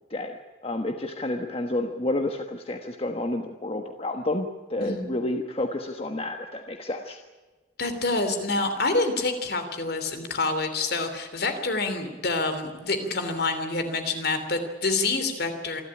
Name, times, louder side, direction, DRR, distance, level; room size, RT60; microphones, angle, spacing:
voice 1, 0.1-7.2, left 1 dB, 30° left, 4 dB, 1.3 m, -30 dB
voice 2, 7.8-15.8, left 3 dB, 55° left, 8 dB, 3.1 m, -27 dB
27.0 x 12.5 x 9.9 m, 1.3 s
head